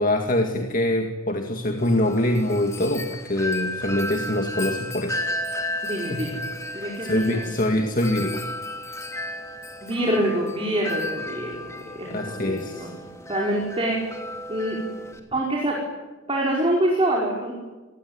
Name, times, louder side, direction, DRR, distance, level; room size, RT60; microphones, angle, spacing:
voice 1, 0.0-5.2 6.1-6.2 6.7-8.4 12.1-12.9, left 1 dB, 40° left, 4 dB, 2.1 m, -24 dB
Wind chime, 1.8-15.2, left 1 dB, 15° left, 3.2 m, -34 dB
voice 2, 5.8-6.3 6.7-7.5 9.8-12.9 13.2-14.0 14.5-14.8 15.3-15.8 16.3-17.5, right 1 dB, 25° right, -1 dB, 5.1 m, -25 dB
28.5 x 20.0 x 9.6 m, 1.2 s
head